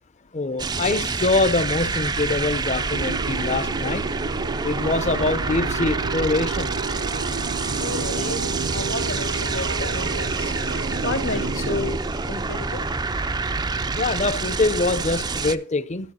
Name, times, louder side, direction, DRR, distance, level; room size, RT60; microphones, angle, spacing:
voice 1, 0.3-4.0 4.6-6.7 13.9-16.1, left 3 dB, 35° left, 0.7 m, -24 dB
sound 1, 0.6-15.6, right 4 dB, 20° right, 0.4 m, -27 dB
sound 2, 2.9-12.0, right 4 dB, 65° right, 0.6 m, -31 dB
voice 2, 7.8-12.9, left 2 dB, 80° left, 2.2 m, -32 dB
13.5 x 7.8 x 4.3 m
head